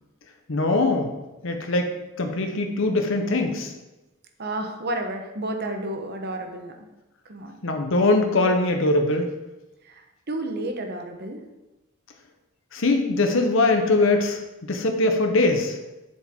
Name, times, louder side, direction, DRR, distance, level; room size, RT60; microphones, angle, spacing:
voice 1, 0.5-1.1 1.4-1.9 2.2-3.7 7.6-9.3 12.7-15.8, left 2 dB, 60° left, 4 dB, 0.9 m, -22 dB
voice 2, 4.4-6.9 7.2-7.6 9.8-11.4, right 1 dB, 50° right, 5 dB, 1.0 m, -31 dB
7.5 x 7.4 x 3.6 m, 1.0 s
head